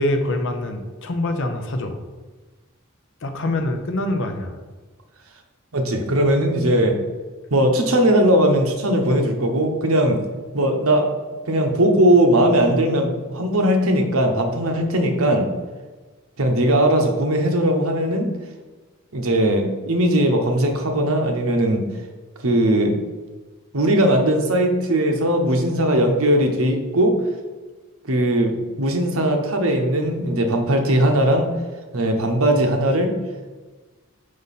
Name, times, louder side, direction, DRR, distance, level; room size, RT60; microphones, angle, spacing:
voice 1, 0.0-2.0 3.2-4.6, left 1 dB, 60° left, 5 dB, 0.7 m, -24 dB
voice 2, 5.7-7.0 7.5-10.2 10.5-11.1 11.5-15.5 16.4-18.3 19.1-21.8 22.4-23.0 23.7-27.1 28.1-31.5 31.9-33.1, right 1 dB, 75° right, 4 dB, 0.9 m, -19 dB
5.4 x 5.0 x 4.1 m, 1.3 s
head